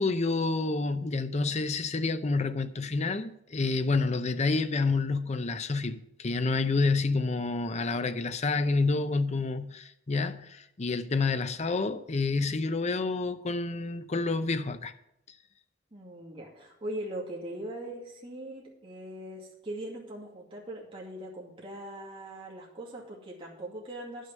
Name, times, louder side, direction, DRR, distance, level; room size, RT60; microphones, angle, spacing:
voice 1, 0.0-14.9, left 3 dB, 35° left, 0.7 m, -28 dB
voice 2, 15.9-24.3, right 1 dB, 30° right, 2.3 m, -40 dB
10.5 x 6.5 x 7.5 m
head